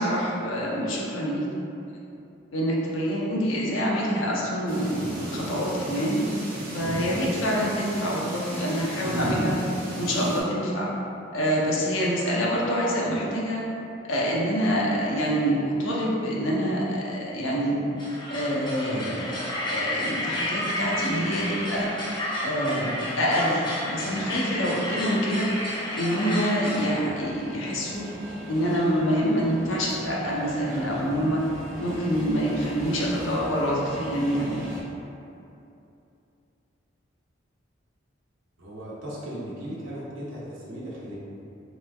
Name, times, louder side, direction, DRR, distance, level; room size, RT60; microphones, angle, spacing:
voice 1, 0.0-1.5 2.5-6.2 6.7-9.6 10.0-10.9 11.3-13.6 14.1-17.8 18.3-19.2 19.7-21.9 22.4-22.9 23.2-25.5 25.9-28.1 28.5-31.4 31.8-34.5, equal, 90° left, -4 dB, 0.7 m, -26 dB
sound 1, 4.7-10.4, right 1 dB, 50° right, 0.7 m, -34 dB
sound 2, 18.0-26.9, left 1 dB, 25° left, 0.5 m, -31 dB
sound 3, 26.7-34.8, equal, 10° right, 0.8 m, -39 dB
voice 2, 38.6-41.1, equal, 80° right, -7 dB, 0.8 m, -37 dB
3.4 x 3.0 x 2.3 m, 2.8 s
head